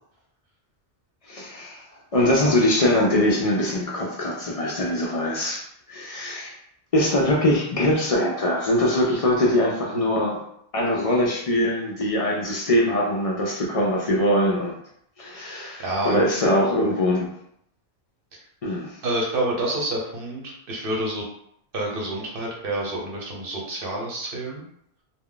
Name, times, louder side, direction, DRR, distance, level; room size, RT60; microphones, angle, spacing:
voice 1, 1.3-1.8 2.1-6.5 6.9-10.4 10.7-14.7 15.2-17.3 18.6-19.0, left 1 dB, 50° left, -2 dB, 0.4 m, -22 dB
voice 2, 15.8-16.2 18.3-18.4 19.0-21.3 21.7-24.6, right 1 dB, 60° right, -2 dB, 0.9 m, -28 dB
2.2 x 2.2 x 3.6 m, 0.71 s
omnidirectional pair, 1.1 m